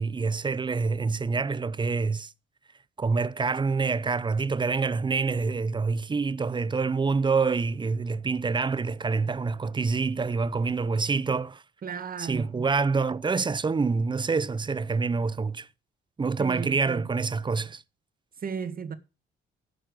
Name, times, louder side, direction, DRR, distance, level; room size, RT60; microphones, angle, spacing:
voice 1, 0.0-2.3 3.0-11.6 12.2-15.7 16.2-17.8, right 4 dB, 25° right, 0.7 m, -26 dB
voice 2, 11.8-12.7 16.4-17.1 18.4-18.9, right 6 dB, 45° right, 1.9 m, -35 dB
12.0 x 6.4 x 6.5 m
cardioid pair, 90°, 20 cm